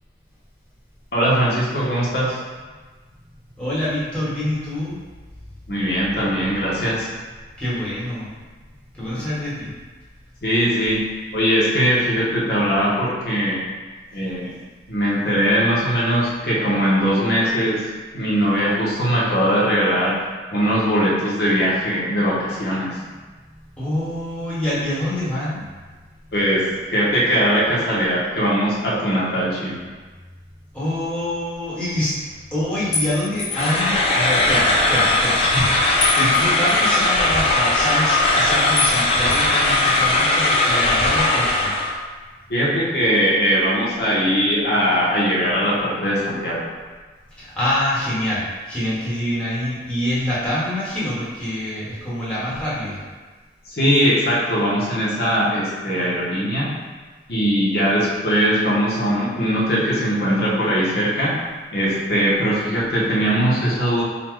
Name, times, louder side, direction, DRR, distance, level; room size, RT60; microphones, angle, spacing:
voice 1, 1.1-2.4 5.7-7.1 10.4-11.0 11.3-13.6 14.1-14.5 14.9-17.9 18.1-20.2 20.5-22.9 26.3-26.6 26.9-29.8 42.5-46.6 53.7-56.7 57.3-61.4 61.7-64.0, equal, 60° left, -6 dB, 0.8 m, -20 dB
voice 2, 3.6-5.0 7.6-8.3 8.9-9.7 23.7-25.6 30.7-32.2 32.5-41.7 47.4-53.0, left 1 dB, 5° left, -10 dB, 1.1 m, -25 dB
sound 1, 32.9-33.9 36.0-37.0 38.8-39.0 39.3-40.3, left 3 dB, 80° left, 1.4 m, -27 dB
sound 2, 33.5-41.9, left 2 dB, 30° left, 0.4 m, -19 dB
4.0 x 2.1 x 4.5 m, 1.4 s
head